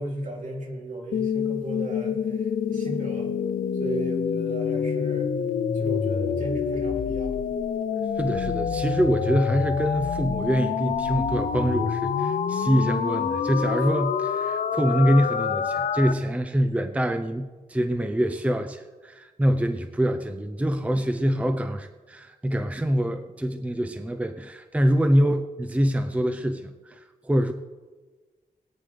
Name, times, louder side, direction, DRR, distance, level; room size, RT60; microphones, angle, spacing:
voice 1, 0.0-2.2 2.7-3.3 3.8-5.3 5.7-7.4 21.3-21.5, right 1 dB, 60° right, -1 dB, 3.0 m, -35 dB
sound 1, 1.1-16.1, left 7 dB, 75° left, 0.7 m, -27 dB
voice 2, 8.2-27.5, equal, 10° right, 7 dB, 0.6 m, -25 dB
21.0 x 9.4 x 3.4 m, 1.3 s
wide cardioid pair, 105°, 14 cm